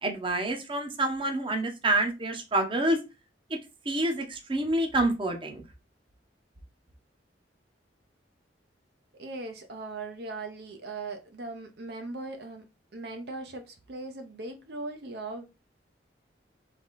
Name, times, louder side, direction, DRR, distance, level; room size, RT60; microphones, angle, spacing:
voice 1, 0.0-3.0 3.5-3.6 3.8-5.6, right 1 dB, 30° right, 0.8 m, -27 dB
voice 2, 9.2-12.6 12.9-15.4, right 2 dB, 65° right, 0.7 m, -39 dB
3.4 x 3.4 x 4.1 m
head